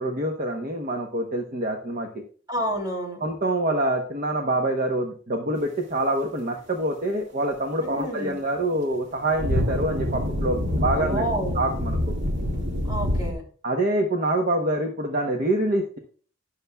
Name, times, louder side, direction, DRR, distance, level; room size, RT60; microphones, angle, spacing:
voice 1, 0.0-2.2 3.2-11.3 11.5-12.1 13.6-16.0, right 1 dB, 45° right, 3 dB, 0.9 m, -26 dB
voice 2, 2.5-3.2 7.8-8.3 10.9-11.5 12.9-13.4, right 1 dB, 20° right, 0 dB, 3.1 m, -29 dB
sound 1, 8.9-13.3, left 1 dB, 60° right, 1.9 m, -26 dB
12.5 x 9.7 x 2.3 m, 0.43 s
head